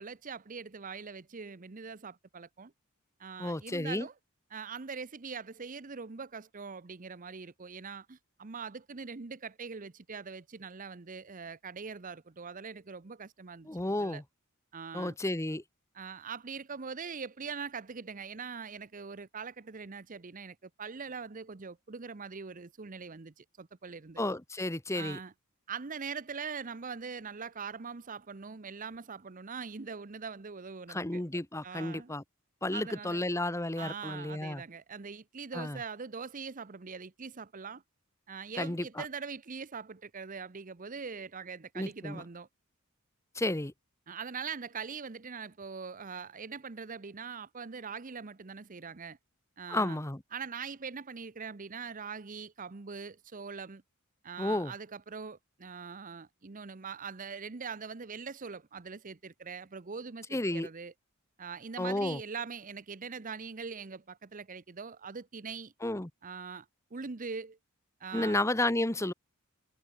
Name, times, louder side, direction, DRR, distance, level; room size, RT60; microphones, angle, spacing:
voice 1, 0.0-2.7 3.2-4.1 4.5-14.2 14.7-15.1 15.9-24.2 24.9-25.3 25.7-31.2 31.6-32.1 32.7-33.3 33.8-37.8 38.3-42.5 44.1-49.2 49.6-50.0 50.3-53.8 54.2-60.9 61.4-65.7 66.2-66.7 66.9-67.6 68.0-68.4, right 5 dB, 40° right, 0.7 m, -42 dB
voice 2, 3.4-4.1 13.7-14.2 14.9-15.6 24.2-25.2 30.9-32.2 32.6-34.6 35.5-35.8 38.6-39.0 41.7-42.2 43.3-43.7 49.7-50.2 54.4-54.7 60.3-60.7 61.8-62.2 65.8-66.1 68.1-69.1, left 1 dB, 15° left, 1.0 m, -32 dB
head